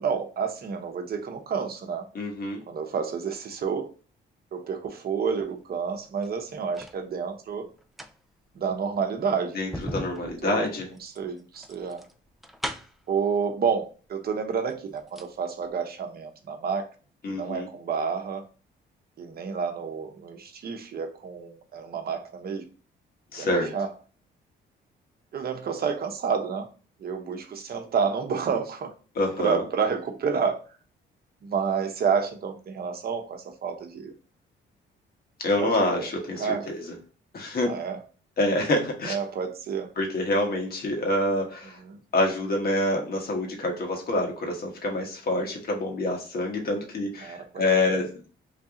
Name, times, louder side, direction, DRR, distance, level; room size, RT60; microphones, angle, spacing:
voice 1, 0.0-2.0 2.7-3.9 4.5-7.7 8.5-9.6 10.1-10.6 11.0-12.1 13.1-16.9 17.3-18.4 19.2-22.7 23.4-23.9 25.3-26.7 27.0-28.9 29.4-30.8 31.4-34.1 35.6-36.1 36.4-36.7 37.6-38.0 39.0-39.9 41.8-42.0 47.2-48.0, right 6 dB, 50° right, 5 dB, 0.8 m, -30 dB
voice 2, 2.1-2.6 9.5-10.9 17.2-17.7 23.3-23.7 29.2-29.6 35.4-36.8 37.3-37.7 38.4-39.1 40.0-41.8 42.1-48.1, left 1 dB, 50° left, 1 dB, 1.3 m, -26 dB
sound 1, 6.0-7.0 7.7-13.1 14.1-14.2 14.6-15.4 15.7-15.8, equal, ahead, 0.4 m, -39 dB
3.3 x 2.7 x 3.7 m, 0.37 s
cardioid pair, 90°, 20 cm